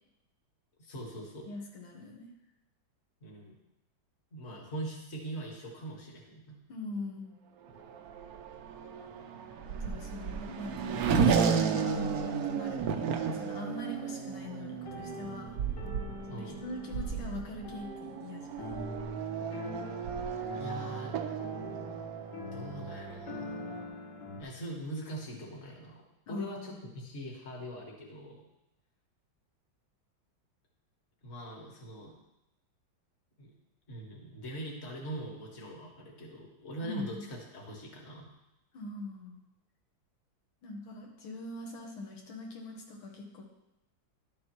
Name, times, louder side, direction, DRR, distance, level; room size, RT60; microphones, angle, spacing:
voice 1, 0.8-1.5 3.2-3.6 4.3-6.6 16.3-16.6 20.5-21.1 22.5-23.6 24.4-26.0 26.3-28.5 31.2-32.2 33.4-33.5 33.9-38.3, right 1 dB, 35° left, -1 dB, 1.8 m, -42 dB
voice 2, 1.4-2.3 6.7-7.4 9.7-15.6 16.3-18.8 26.3-26.8 36.8-37.3 38.7-39.4 40.6-43.4, left 2 dB, 85° left, 0 dB, 2.1 m, -42 dB
Race car auto racing / Accelerating revving vroom, 7.6-23.9, right 6 dB, 70° right, 0.9 m, -34 dB
sound 1, 14.6-24.4, left 1 dB, 60° left, 1.8 m, -43 dB
11.5 x 7.3 x 3.0 m, 0.90 s
omnidirectional pair, 2.2 m